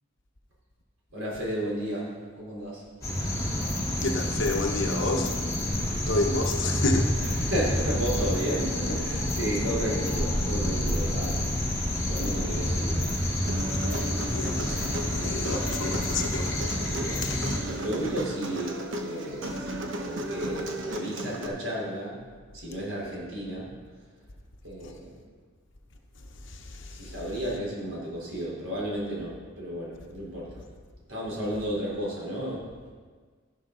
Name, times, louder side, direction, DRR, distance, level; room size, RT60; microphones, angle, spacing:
voice 1, 1.1-2.1 2.4-2.8 7.2-11.4 12.0-12.9 16.8-17.2 17.6-22.2 22.5-23.7 24.6-25.1 27.0-30.5 31.1-32.6, right 1 dB, 90° right, -5 dB, 3.8 m, -33 dB
sound 1, 3.0-17.6, left 1 dB, 15° left, 3.7 m, -28 dB
voice 2, 4.0-5.3 6.1-7.1 14.3-14.6 15.1-16.5 17.2-17.5 26.8-26.9, left 2 dB, 65° left, 3 dB, 1.0 m, -29 dB
Human voice, 13.5-21.5, right 1 dB, 65° right, 1.1 m, -35 dB
11.5 x 11.5 x 3.9 m, 1.6 s
head